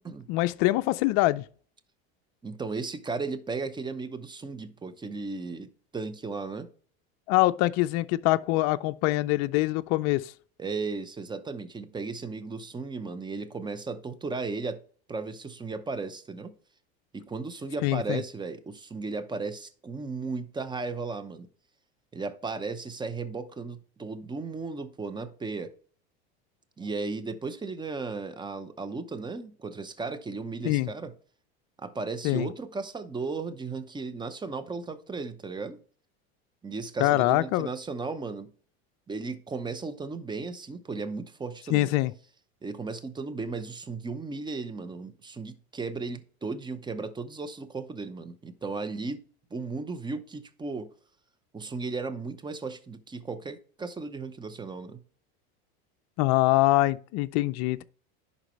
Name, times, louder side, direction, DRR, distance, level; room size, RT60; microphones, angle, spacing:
voice 1, 0.3-1.4 7.3-10.3 17.8-18.2 30.6-30.9 32.2-32.5 37.0-37.7 41.7-42.1 56.2-57.8, left 18 dB, 55° left, 0.4 m, -24 dB
voice 2, 2.4-6.7 10.6-14.8 15.1-16.5 17.1-21.5 22.1-25.7 26.8-31.1 31.8-35.8 36.6-38.5 39.1-41.9 42.6-49.2 49.5-50.9 51.5-55.0, right 4 dB, 15° right, 0.7 m, -35 dB
11.0 x 4.1 x 3.1 m
supercardioid pair, 110°, 32 cm